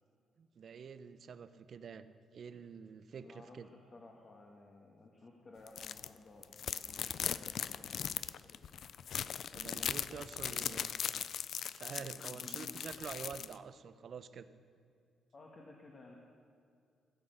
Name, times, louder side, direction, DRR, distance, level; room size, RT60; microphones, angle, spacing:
voice 1, 0.4-2.1 2.3-3.7 9.5-11.0 11.7-14.5, right 6 dB, 45° right, 13 dB, 0.6 m, -47 dB
voice 2, 3.2-8.6 9.4-10.8 11.9-12.8 15.3-16.2, left 3 dB, 30° left, 0 dB, 1.3 m, -56 dB
sound 1, 5.7-6.1 6.4-13.5, left 8 dB, 55° left, 0.3 m, -39 dB
16.5 x 8.1 x 6.6 m, 2.3 s
cardioid pair, 160°, 0 cm